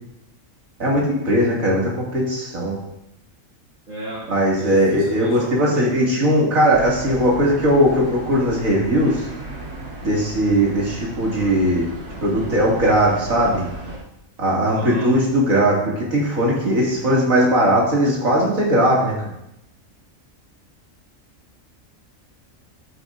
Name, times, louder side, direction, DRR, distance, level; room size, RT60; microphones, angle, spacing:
voice 1, 0.8-2.8 4.3-9.2 10.0-11.8 12.2-13.6 14.4-19.1, equal, 85° right, -4 dB, 2.8 m, -19 dB
voice 2, 3.9-4.2 4.6-6.1 14.7-15.1, right 1 dB, 70° right, -6 dB, 2.3 m, -33 dB
sound 1, 6.7-14.0, right 2 dB, 50° right, 2.5 m, -35 dB
14.0 x 8.0 x 2.6 m, 0.83 s
omnidirectional pair, 1.4 m